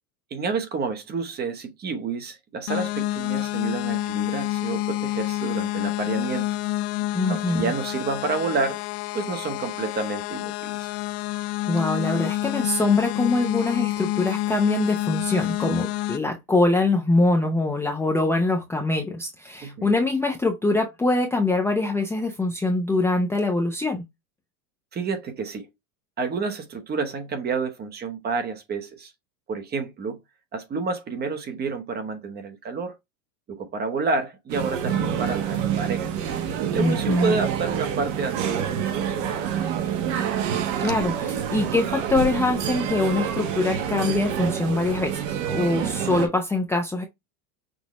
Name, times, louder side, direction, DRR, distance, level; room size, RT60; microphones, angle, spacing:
voice 1, 0.3-6.5 7.3-8.8 9.1-10.9 19.6-20.0 24.9-25.7 26.2-29.1 29.5-30.2 30.5-32.9 33.5-36.1 36.7-39.7, right 4 dB, 20° right, 0.9 m, -29 dB
sound 1, 2.7-16.2, left 15 dB, 50° left, 0.4 m, -28 dB
voice 2, 7.1-7.6 11.7-24.0 36.7-37.4 40.8-47.0, left 2 dB, 5° left, 0.6 m, -23 dB
sound 2, 34.5-46.3, right 8 dB, 55° right, 1.2 m, -27 dB
6.3 x 2.7 x 3.0 m
supercardioid pair, 140°, 45 cm